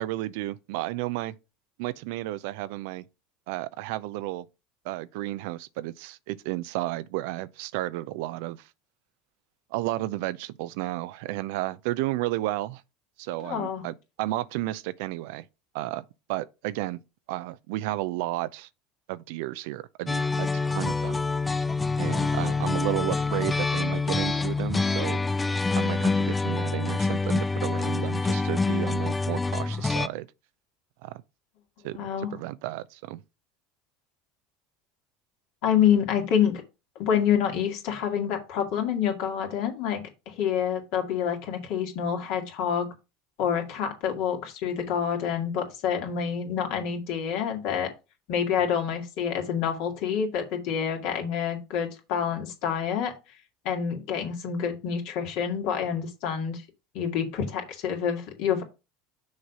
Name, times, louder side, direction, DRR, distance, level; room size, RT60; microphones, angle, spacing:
voice 1, 0.0-1.4 1.8-3.0 3.5-4.5 4.8-8.7 9.7-12.8 13.2-15.5 15.7-17.0 17.3-18.7 19.1-21.2 22.0-25.2 25.7-30.3 31.0-31.2 31.8-32.0 32.3-33.2, right 16 dB, 70° right, 0.5 m, -32 dB
voice 2, 13.4-13.8 32.0-32.3 35.6-36.6 37.0-42.9 43.4-47.9 48.3-53.1 53.6-56.6 56.9-58.6, left 8 dB, 65° left, 2.2 m, -27 dB
sound 1, 20.1-30.1, left 3 dB, 15° left, 0.5 m, -26 dB
6.4 x 4.0 x 5.9 m
hypercardioid pair, 80°, 0 cm